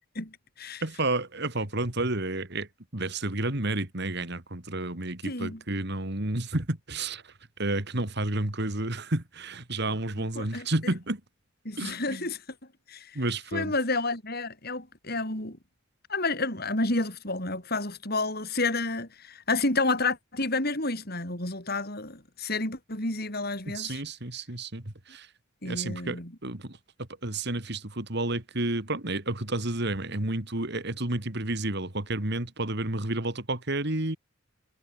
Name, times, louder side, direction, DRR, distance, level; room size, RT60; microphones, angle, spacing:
voice 1, 0.8-2.7 2.9-7.2 7.6-11.2 11.8-12.3 13.1-13.7 23.7-25.3 25.6-26.8 27.2-34.2, right 2 dB, 55° right, 2.9 m, -31 dB
voice 2, 5.2-5.6 10.3-10.9 11.6-12.4 12.9-13.2 13.5-15.6 16.1-24.0 25.6-26.3, left 3 dB, 50° left, 8.0 m, -30 dB
head